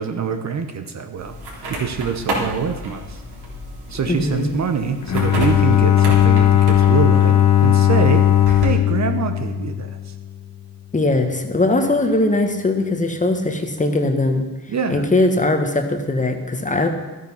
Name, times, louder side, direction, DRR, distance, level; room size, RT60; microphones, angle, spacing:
voice 1, 0.0-1.3 1.7-3.2 3.9-7.3 7.6-8.2 8.6-10.1 14.7-15.1, right 6 dB, 40° right, 7 dB, 1.0 m, -24 dB
sound 1, 1.2-8.7, right 1 dB, 60° right, 3.7 m, -31 dB
voice 2, 4.1-4.6 10.9-14.5 14.9-16.9, left 2 dB, 15° left, 5 dB, 1.4 m, -20 dB
Bowed string instrument, 5.0-10.3, left 11 dB, 40° left, 1.1 m, -16 dB
12.0 x 9.1 x 5.7 m, 1.2 s
cardioid pair, 90°, 43 cm